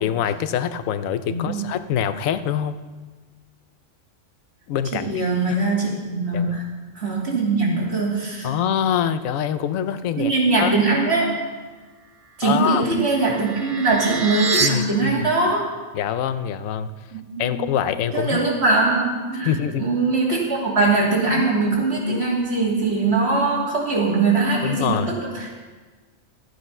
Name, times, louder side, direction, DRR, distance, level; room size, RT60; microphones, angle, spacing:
voice 1, 0.0-2.8 4.7-5.1 6.3-6.6 8.4-10.3 10.6-10.7 12.4-12.9 14.6-15.3 15.9-16.9 17.4-18.4 19.4-19.9 24.6-25.1, left 9 dB, 85° left, 12 dB, 1.0 m, -24 dB
voice 2, 4.9-6.6 6.9-8.5 10.2-11.3 12.4-15.6 17.1-17.6 18.1-25.5, right 3 dB, 55° right, -4 dB, 2.8 m, -21 dB
sound 1, 12.4-14.7, right 4 dB, 35° right, 0.6 m, -27 dB
13.0 x 8.3 x 5.4 m, 1.4 s
omnidirectional pair, 1.3 m